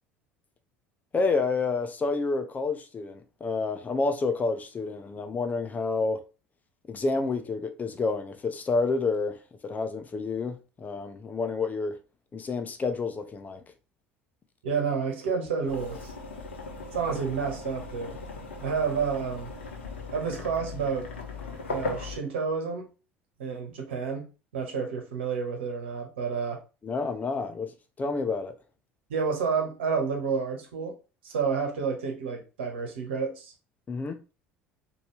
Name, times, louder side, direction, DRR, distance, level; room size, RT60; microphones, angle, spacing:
voice 1, 1.1-6.2 6.9-9.4 9.6-12.0 12.3-13.6 26.8-27.7 28.0-28.5 33.9-34.2, left 3 dB, 25° left, 0.7 m, -29 dB
voice 2, 14.6-16.1 16.9-18.2 18.6-19.5 20.1-21.1 21.7-22.9 23.4-24.3 24.5-26.6 29.1-30.9 31.2-33.5, right 5 dB, 75° right, 1.2 m, -30 dB
sound 1, 15.7-22.2, left 3 dB, 80° left, 0.9 m, -38 dB
4.3 x 2.7 x 3.3 m
hypercardioid pair, 70°, 6 cm